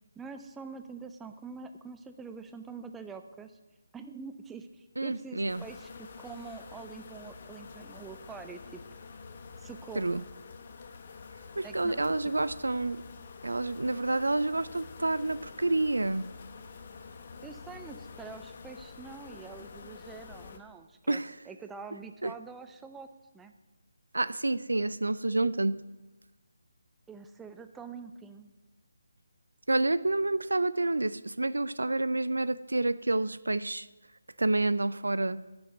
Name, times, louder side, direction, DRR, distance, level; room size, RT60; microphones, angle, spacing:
voice 1, 0.2-3.6 3.9-8.8 9.6-10.0 11.6-12.3 17.4-23.1 23.3-23.5 27.1-28.5, right 5 dB, 5° right, 8 dB, 0.5 m, -45 dB
voice 2, 5.0-5.6 10.0-10.2 11.6-13.0 13.4-16.3 21.1-21.3 22.2-22.3 24.1-25.8 29.7-33.9 34.4-35.4, right 2 dB, 75° right, 16 dB, 0.4 m, -29 dB
sound 1, 5.5-20.6, left 5 dB, 40° left, 0.9 m, -47 dB
9.9 x 7.1 x 7.9 m, 1.1 s
figure-of-eight pair, 150°, 0 cm